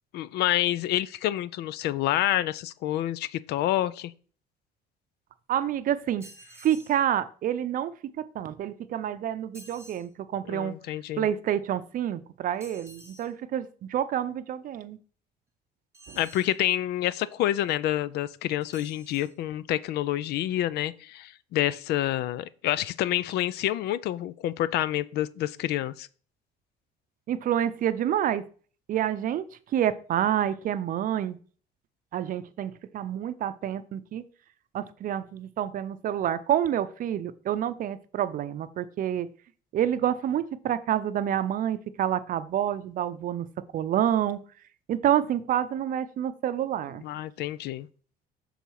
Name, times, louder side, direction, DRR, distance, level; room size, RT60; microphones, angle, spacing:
voice 1, 0.1-4.1 10.5-11.3 16.2-26.1 47.0-47.9, left 13 dB, 75° left, 0.4 m, -28 dB
voice 2, 5.5-6.3 6.6-7.9 8.2-10.7 11.2-15.0 16.1-16.2 27.3-28.4 28.9-29.5 29.7-31.4 32.1-34.2 34.7-39.3 39.7-43.5 43.7-44.4 44.9-47.0, right 10 dB, 55° right, 0.6 m, -28 dB
sound 1, 6.2-7.0 9.5-10.1 12.6-13.3 15.9-16.6 18.6-19.3, right 1 dB, 15° right, 1.2 m, -50 dB
6.8 x 3.9 x 4.7 m
cardioid pair, 110°, 17 cm